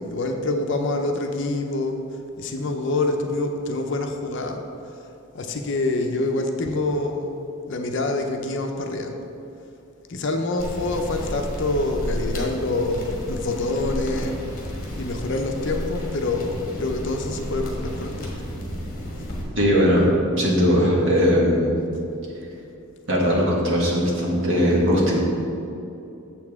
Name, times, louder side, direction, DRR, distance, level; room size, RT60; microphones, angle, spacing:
voice 1, 0.0-2.0 2.4-5.0 5.3-7.4 7.7-9.1 10.1-14.4 15.0-18.5, left 2 dB, 55° left, 4 dB, 0.6 m, -26 dB
sound 1, 10.6-19.4, equal, 40° left, 1.4 m, -32 dB
voice 2, 19.5-20.1 20.4-21.8 23.1-25.2, equal, 55° right, -4 dB, 1.6 m, -19 dB
7.2 x 7.0 x 3.6 m, 2.8 s
head